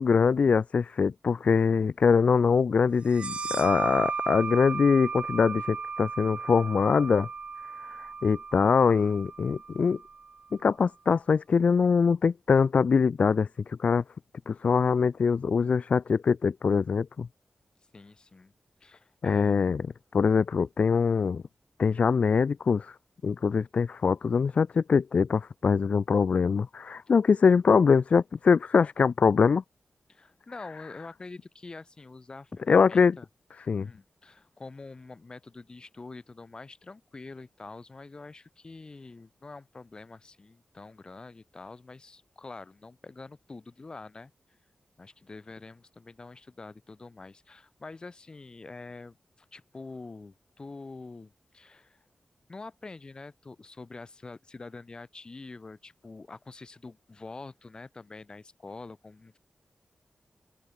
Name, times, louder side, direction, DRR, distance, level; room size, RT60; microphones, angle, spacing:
voice 1, 0.0-7.3 7.8-10.0 10.6-14.0 14.5-17.3 19.2-19.8 20.1-21.4 21.8-23.0 23.2-29.6 32.7-33.2 33.7-33.9, left 5 dB, 60° left, 0.5 m, -23 dB
sound 1, 3.1-10.4, right 4 dB, 50° right, 0.5 m, -35 dB
voice 2, 17.9-18.5 18.8-19.6 30.1-33.3 33.8-44.3 45.0-52.0 52.5-59.4, left 3 dB, 35° left, 6.3 m, -46 dB
open air
wide cardioid pair, 115°, 2 cm